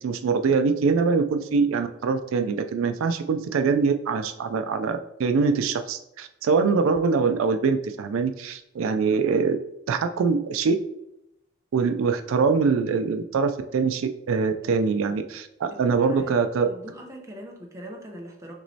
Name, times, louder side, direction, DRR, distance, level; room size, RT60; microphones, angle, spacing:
voice 1, 0.0-9.6 9.9-10.8 11.7-16.7, right 5 dB, 85° right, 8 dB, 0.3 m, -23 dB
voice 2, 14.6-15.0 15.7-18.5, equal, 15° right, 0 dB, 0.6 m, -42 dB
6.1 x 3.0 x 2.7 m, 0.83 s
head